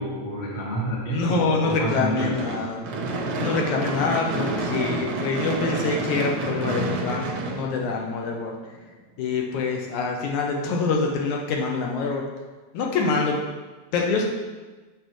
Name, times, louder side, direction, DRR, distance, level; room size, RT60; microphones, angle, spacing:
voice 1, 0.0-2.6, right 1 dB, 50° left, -4 dB, 0.5 m, -28 dB
voice 2, 1.1-2.8 3.4-8.5 9.2-12.2 12.7-13.4 13.9-14.3, left 4 dB, 80° left, 0 dB, 2.3 m, -25 dB
Gunshot gunfire / Fireworks, 2.2-8.4, right 2 dB, 75° right, 1.2 m, -29 dB
7.1 x 6.9 x 3.1 m, 1.3 s
omnidirectional pair, 3.4 m